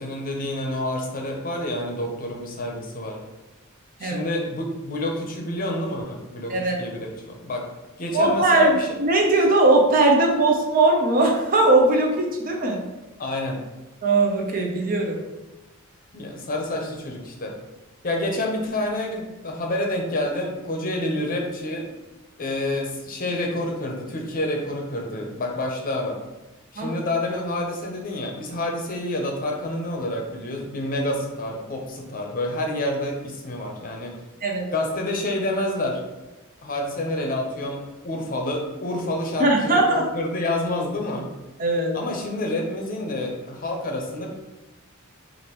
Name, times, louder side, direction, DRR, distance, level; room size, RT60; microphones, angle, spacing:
voice 1, 0.0-3.2 4.0-7.6 8.0-8.9 13.2-13.6 16.1-17.5 18.0-21.9 22.4-26.2 26.7-34.1 34.7-36.0 36.6-41.3 41.9-44.3, left 1 dB, 40° left, 1 dB, 0.7 m, -28 dB
voice 2, 8.1-12.8 14.0-15.2 26.8-27.0 34.4-34.7 39.4-40.0 41.6-41.9, right 2 dB, 40° right, 1 dB, 0.6 m, -19 dB
5.0 x 2.6 x 3.0 m, 1.0 s
head